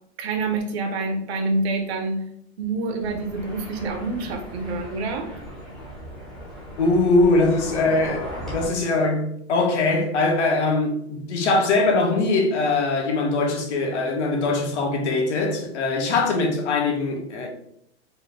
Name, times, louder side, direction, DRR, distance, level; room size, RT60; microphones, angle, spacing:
voice 1, 0.2-2.2 2.6-5.3, right 3 dB, 70° right, 0.9 m, -27 dB
sound 1, 3.0-8.7, equal, ahead, 0.4 m, -37 dB
voice 2, 6.8-17.5, left 3 dB, 90° left, 1.3 m, -22 dB
4.5 x 2.1 x 3.4 m
supercardioid pair, 165°, 33 cm